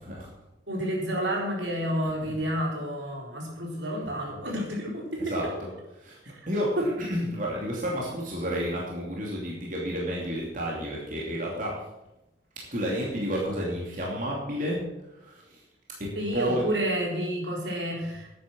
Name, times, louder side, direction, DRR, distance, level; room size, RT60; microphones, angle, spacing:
voice 1, 0.7-5.2 6.8-6.9 16.1-18.3, equal, 75° right, -1 dB, 4.0 m, -30 dB
voice 2, 6.0-11.7 12.7-14.8 15.1-15.6 16.0-16.5, equal, 45° right, -3 dB, 2.9 m, -31 dB
12.0 x 9.5 x 6.3 m, 0.92 s
head